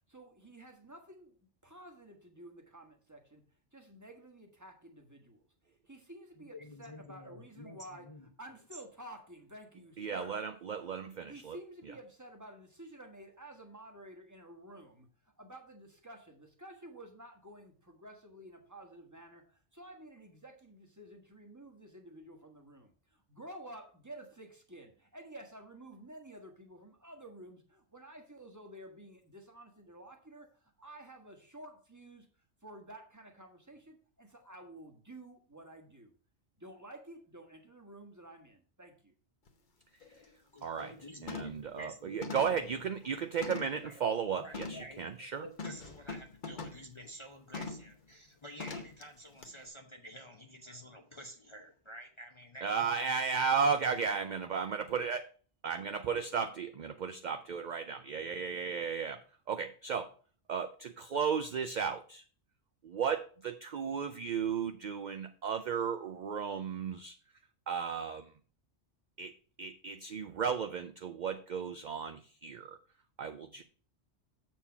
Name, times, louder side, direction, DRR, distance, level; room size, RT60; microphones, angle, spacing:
voice 1, 0.1-1.4 1.6-3.4 3.7-5.4 5.8-8.1 8.4-10.4 11.3-15.1 15.4-32.3 32.6-36.1 36.6-39.1, right 1 dB, 15° right, 1.3 m, -51 dB
voice 2, 6.4-8.3 40.5-42.7 43.8-44.1 44.3-53.1, equal, 30° left, 0.7 m, -50 dB
voice 3, 10.0-11.6 40.6-40.9 41.2-45.4 52.6-55.2 55.6-59.2 59.5-60.1 60.5-62.2 62.8-67.1 67.7-68.3 69.2-69.3 69.6-72.8 73.2-73.6, right 6 dB, 55° right, 0.6 m, -34 dB
sound 1, 39.5-39.6 40.0-40.3 40.6-40.9 41.3-41.7 42.2-43.9 44.5-44.9 45.6-46.9 47.5-47.9 48.6-49.0 49.4-49.5, left 4 dB, 45° left, 1.1 m, -43 dB
7.3 x 4.4 x 5.7 m
omnidirectional pair, 1.2 m